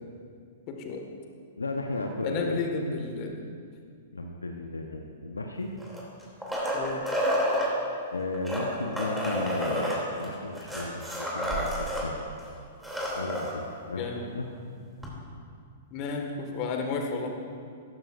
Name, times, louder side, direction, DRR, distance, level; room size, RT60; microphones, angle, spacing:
voice 1, 0.7-1.0 2.2-3.4 6.7-7.0 13.9-14.3 15.9-17.3, left 4 dB, 40° left, 3 dB, 1.7 m, -32 dB
voice 2, 1.6-2.6 4.1-5.7 8.1-12.1 13.1-14.5, left 2 dB, 80° left, 3 dB, 0.8 m, -34 dB
sound 1, 5.8-7.7 8.3-12.1 12.4-12.5 12.7-13.5 15.0-15.1, equal, 5° right, 2.8 m, -30 dB
15.5 x 14.0 x 2.5 m, 2.2 s
figure-of-eight pair, 105°, 0 cm